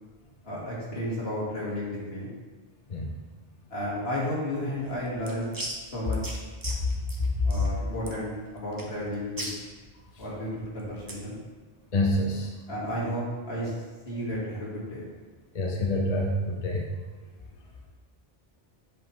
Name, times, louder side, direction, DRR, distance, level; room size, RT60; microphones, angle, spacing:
voice 1, 0.4-2.3 3.7-5.6 5.9-6.4 7.4-9.5 10.2-11.4 12.7-13.7 14.1-15.1, equal, 75° left, -6 dB, 2.1 m, -32 dB
sound 1, 4.8-11.3, right 1 dB, 25° right, 0.7 m, -40 dB
voice 2, 11.9-12.5 15.5-16.9, left 1 dB, 40° left, -1 dB, 0.8 m, -27 dB
7.4 x 5.3 x 3.1 m, 1.4 s
omnidirectional pair, 1.0 m